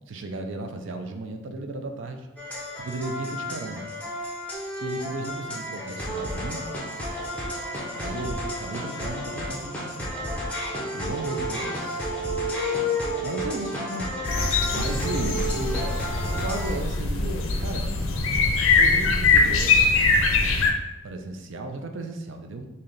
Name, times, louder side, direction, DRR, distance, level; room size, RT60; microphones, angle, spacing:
voice 1, 0.1-2.3 2.8-3.9 4.8-6.6 7.9-10.1 10.9-12.1 13.2-14.1 14.7-17.9 18.8-20.4 21.0-22.7, right 2 dB, 60° right, 5 dB, 0.4 m, -35 dB
sound 1, 2.4-16.7, equal, 5° left, 0.6 m, -31 dB
sound 2, 14.2-20.7, left 4 dB, 70° left, 0.5 m, -22 dB
3.3 x 2.7 x 3.8 m, 1.0 s
head